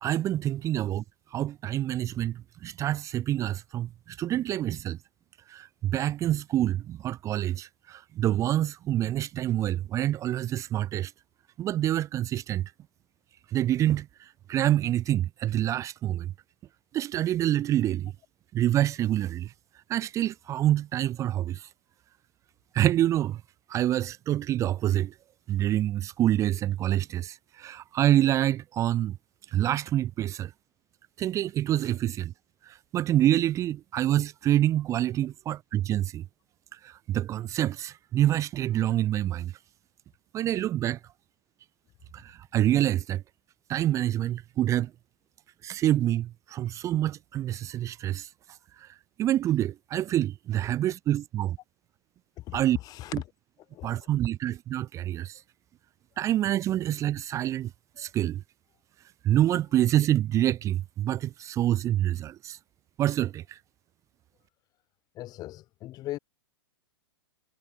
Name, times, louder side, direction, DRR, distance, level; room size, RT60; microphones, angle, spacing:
voice 1, 0.0-1.0 1.3-5.0 5.5-11.1 11.6-12.7 13.5-16.3 16.9-18.1 18.5-19.5 19.9-21.7 22.7-23.4 23.7-25.1 25.5-29.2 29.5-30.5 31.2-32.3 32.6-36.2 36.7-39.5 40.3-41.0 42.1-43.2 43.7-44.9 45.6-48.3 48.8-48.9 49.2-51.6 52.5-52.8 53.1-53.2 53.8-55.4 56.2-57.7 58.0-58.4 59.2-62.6 63.0-63.6, right 12 dB, 25° right, 0.6 m, -27 dB
voice 2, 52.4-53.2 53.7-54.1 58.0-58.1 65.1-66.2, left 15 dB, 30° left, 1.2 m, -39 dB
hypercardioid pair, 130°, 13 cm